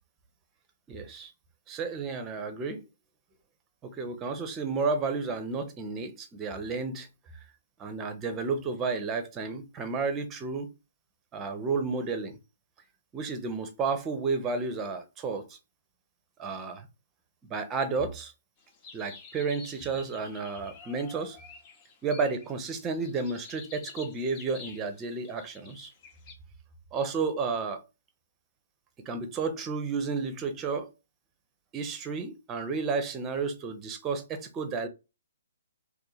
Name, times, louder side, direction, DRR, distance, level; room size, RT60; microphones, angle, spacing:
voice 1, 0.9-1.3 1.7-2.8 3.8-7.1 7.8-10.7 11.3-12.4 13.1-15.6 16.4-16.9 17.5-18.3 18.9-21.4 22.0-25.9 26.9-27.8 29.1-30.9 31.7-34.9, right 4 dB, 20° right, 0.7 m, -32 dB
sound 1, 18.6-26.3, left 5 dB, 30° left, 0.9 m, -49 dB
2.7 x 2.7 x 3.8 m
figure-of-eight pair, 130°, 0 cm